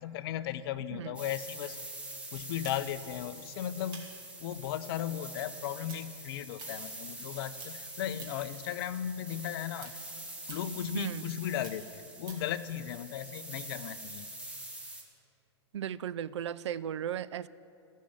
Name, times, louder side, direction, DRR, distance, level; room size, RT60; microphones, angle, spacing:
voice 1, 0.0-1.8 2.3-4.1 4.4-9.9 10.5-14.3, left 11 dB, 55° left, 14 dB, 0.6 m, -36 dB
sound 1, 1.1-15.0, right 1 dB, 10° right, 1.5 m, -45 dB
sound 2, 2.6-7.3 7.5-8.6 8.9-12.6, right 4 dB, 30° right, 2.7 m, -51 dB
voice 2, 10.9-11.3 15.7-17.5, right 10 dB, 80° right, 18 dB, 0.4 m, -36 dB
15.0 x 6.4 x 7.1 m, 2.8 s
hypercardioid pair, 120°, 15 cm